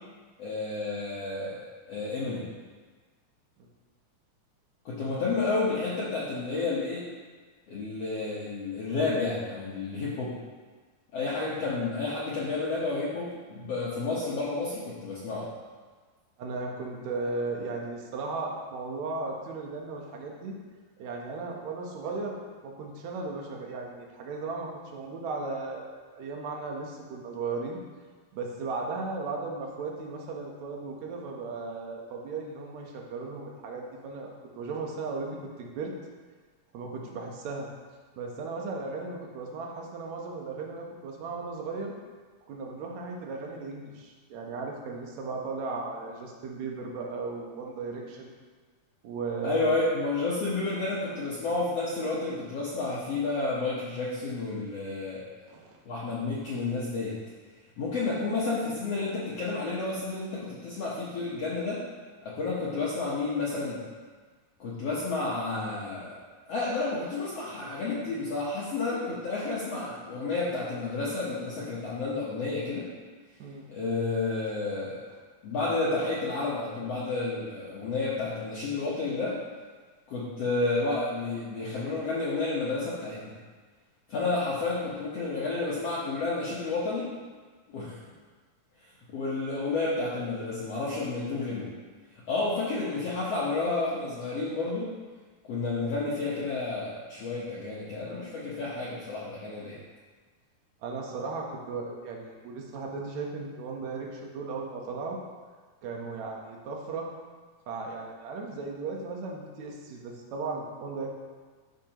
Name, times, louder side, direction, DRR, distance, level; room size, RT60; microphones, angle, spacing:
voice 1, 0.4-1.6 1.9-2.5 4.8-7.0 7.7-10.3 11.1-15.5 49.4-55.2 55.8-57.1 57.8-61.8 62.2-63.8 64.6-66.2 66.5-72.9 73.7-75.0 75.4-79.4 80.1-83.3 84.1-87.1 87.7-88.0 89.1-91.7 92.3-94.9 95.5-99.8, left 3 dB, 65° left, -7 dB, 1.7 m, -31 dB
voice 2, 16.4-20.6 21.0-27.8 28.3-35.9 36.7-37.7 38.2-41.9 42.5-48.3 49.0-49.7 55.5-55.8 73.4-73.7 100.8-105.2 105.8-107.1 107.7-111.1, right 4 dB, 65° right, 0 dB, 2.0 m, -36 dB
12.0 x 6.0 x 2.9 m, 1.4 s
omnidirectional pair, 4.2 m